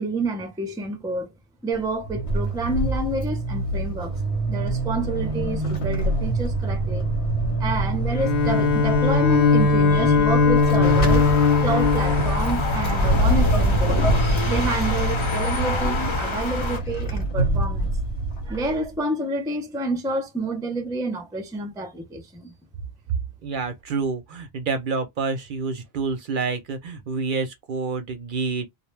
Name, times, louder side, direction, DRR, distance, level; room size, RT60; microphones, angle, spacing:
voice 1, 0.0-1.3 1.6-4.2 4.5-7.1 7.6-11.3 11.6-14.1 14.5-17.9 18.5-22.5, right 2 dB, 5° right, 0.4 m, -28 dB
Vehicle / Accelerating revving vroom / Squeak, 1.7-18.9, right 2 dB, 85° left, 1.2 m, -25 dB
Bowed string instrument, 8.1-13.3, left 5 dB, 65° left, 0.7 m, -20 dB
sound 1, 10.8-16.8, left 1 dB, 30° left, 0.7 m, -26 dB
voice 2, 23.4-28.7, right 4 dB, 60° right, 0.6 m, -28 dB
2.4 x 2.1 x 3.1 m
omnidirectional pair, 1.1 m